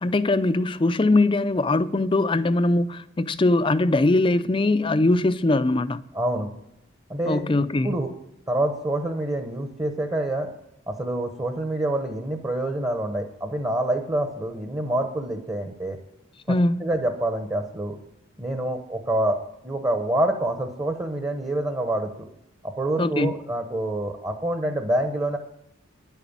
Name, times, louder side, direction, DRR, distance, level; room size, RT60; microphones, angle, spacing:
voice 1, 0.0-6.0 7.3-7.9 16.5-16.8 23.0-23.3, left 2 dB, 25° left, 0.4 m, -21 dB
voice 2, 6.1-6.5 7.1-8.1 8.5-10.5 10.9-16.0 16.5-18.0 18.4-19.4 19.6-22.1 22.6-25.4, right 1 dB, 20° right, 0.9 m, -26 dB
10.5 x 9.1 x 7.2 m
head